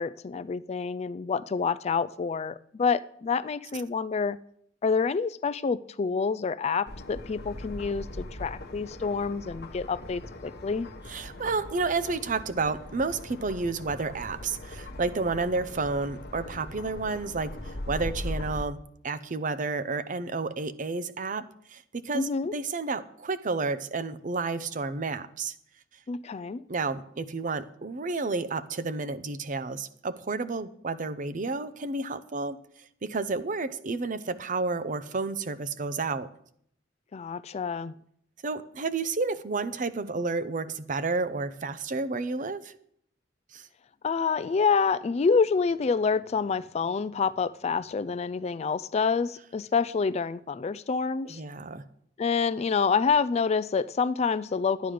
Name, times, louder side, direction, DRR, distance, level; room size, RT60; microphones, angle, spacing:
voice 1, 0.0-4.4 4.8-10.9 22.1-22.5 26.1-26.6 37.1-37.9 44.0-51.4 52.2-54.9, left 5 dB, 35° left, 0.3 m, -27 dB
sound 1, 6.9-18.6, left 1 dB, 60° left, 1.1 m, -40 dB
voice 2, 11.1-25.5 26.7-36.3 38.4-42.7 43.5-43.7 51.2-51.8, right 3 dB, 45° right, 0.7 m, -31 dB
11.5 x 9.4 x 5.0 m
head